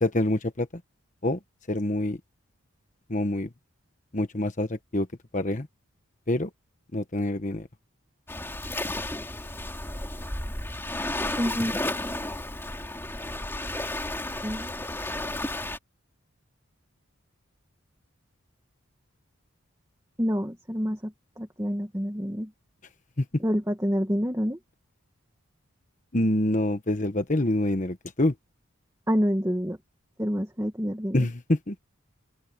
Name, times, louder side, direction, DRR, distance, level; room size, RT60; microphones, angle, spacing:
voice 1, 0.0-0.8 1.2-1.4 1.7-2.2 3.1-3.5 4.1-5.1 5.3-5.7 6.3-6.5 6.9-7.7 23.2-23.3 26.1-28.3 31.1-31.8, left 1 dB, 35° left, 1.2 m, -26 dB
Waves surf, 8.3-15.8, left 1 dB, 10° left, 3.0 m, -33 dB
voice 2, 11.4-11.7 14.4-14.8 20.2-22.5 23.4-24.6 29.1-29.8 30.2-31.3, equal, 15° right, 1.6 m, -27 dB
open air
head